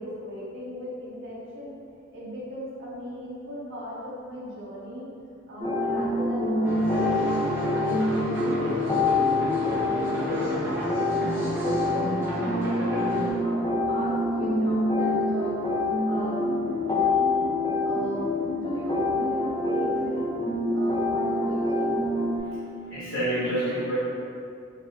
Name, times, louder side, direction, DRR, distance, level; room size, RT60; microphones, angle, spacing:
voice 1, 0.0-1.8 2.1-5.1 5.5-9.6 10.2-16.7 17.8-20.4 20.7-22.0, equal, 60° right, -8 dB, 1.1 m, -37 dB
sound 1, 5.6-22.4, left 2 dB, 20° left, 0.5 m, -26 dB
sound 2, 6.6-13.3, equal, 10° right, 0.8 m, -32 dB
voice 2, 22.9-23.9, right 1 dB, 65° left, -12 dB, 0.9 m, -27 dB
3.9 x 2.5 x 4.0 m, 2.4 s
head